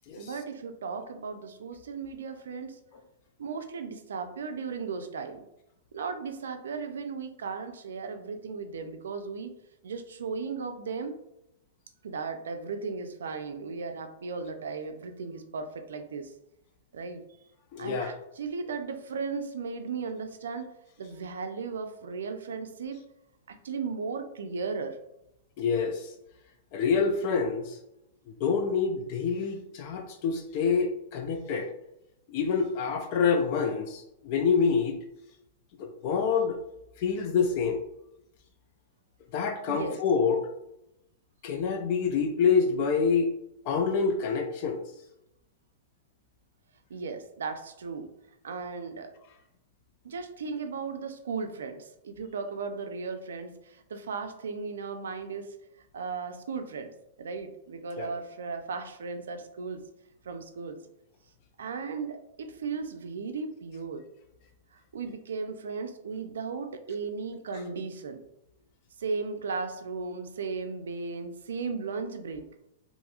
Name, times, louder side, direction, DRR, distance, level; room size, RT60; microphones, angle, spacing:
voice 1, 0.1-2.8 3.4-5.4 5.9-9.5 9.8-11.2 12.0-16.3 16.9-17.2 17.8-20.7 21.0-23.0 23.5-25.0 39.7-40.0 46.9-48.1 48.4-49.1 50.0-55.5 55.9-59.8 60.2-60.8 61.6-64.0 64.7-68.2 69.0-72.5, right 5 dB, 85° right, 7 dB, 0.4 m, -36 dB
voice 2, 17.7-18.1 25.6-26.1 26.7-27.8 28.3-31.7 32.3-35.0 35.8-36.6 37.0-37.8 39.3-40.5 41.4-43.3 43.7-44.8 58.0-58.1, left 5 dB, 50° left, 5 dB, 0.4 m, -27 dB
2.8 x 2.5 x 2.4 m, 0.84 s
hypercardioid pair, 130°, 0 cm